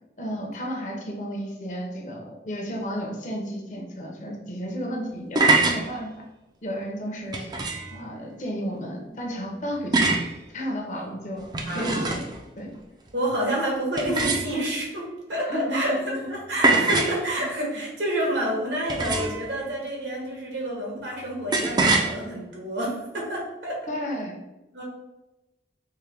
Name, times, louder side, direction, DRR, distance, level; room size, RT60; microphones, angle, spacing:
voice 1, 0.2-6.1 6.6-7.5 7.9-10.1 10.5-11.4 11.7-12.7 15.5-16.1 18.2-18.3 23.9-24.3, equal, 45° left, 0 dB, 0.7 m, -32 dB
sound 1, 5.1-5.8 7.3-7.9 9.9-10.3 11.4-12.4 14.0-14.8 16.6-17.2 18.9-19.5 21.5-22.1, right 3 dB, 25° right, 0.3 m, -23 dB
voice 2, 13.1-23.8 24.7-24.8, right 1 dB, 85° right, -3 dB, 1.3 m, -28 dB
4.5 x 2.2 x 3.3 m, 1.0 s
head